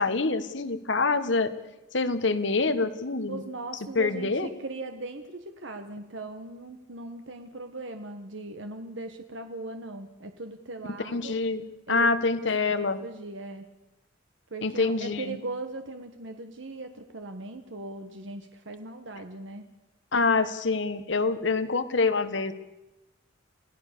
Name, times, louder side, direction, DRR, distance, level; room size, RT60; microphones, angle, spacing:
voice 1, 0.0-1.5 1.9-3.4 3.9-4.5 11.1-11.6 11.9-13.0 14.6-15.4 20.1-22.5, left 3 dB, 65° left, 11 dB, 1.5 m, -26 dB
voice 2, 3.3-11.4 11.9-12.1 12.7-13.7 14.5-19.7, right 2 dB, 70° right, 6 dB, 1.4 m, -39 dB
27.5 x 17.0 x 6.8 m, 0.98 s
head